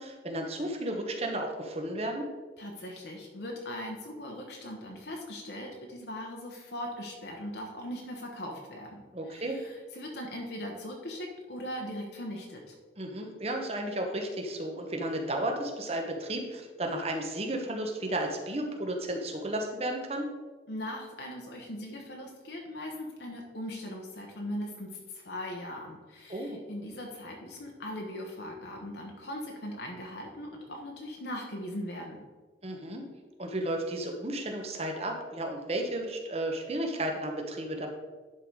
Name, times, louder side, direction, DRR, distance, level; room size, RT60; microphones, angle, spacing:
voice 1, 0.0-2.3 9.1-9.6 13.0-20.3 26.3-26.6 32.6-33.0 33.4-37.9, right 1 dB, 35° right, 2 dB, 1.0 m, -33 dB
voice 2, 2.6-12.7 20.7-32.2, left 1 dB, 65° left, 0 dB, 1.0 m, -40 dB
10.5 x 3.9 x 4.6 m, 1.4 s
head